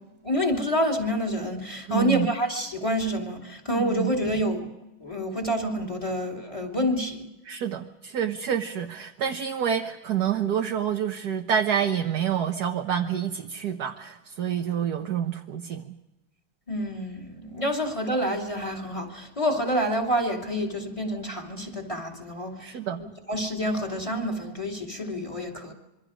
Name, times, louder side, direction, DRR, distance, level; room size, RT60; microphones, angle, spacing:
voice 1, 0.2-4.7 5.0-7.3 16.7-25.7, equal, 15° left, 2 dB, 2.9 m, -28 dB
voice 2, 1.9-2.3 3.8-4.1 7.5-15.8 22.6-23.0, right 9 dB, 60° right, 4 dB, 1.5 m, -28 dB
26.5 x 23.5 x 5.1 m, 1.0 s
omnidirectional pair, 2.0 m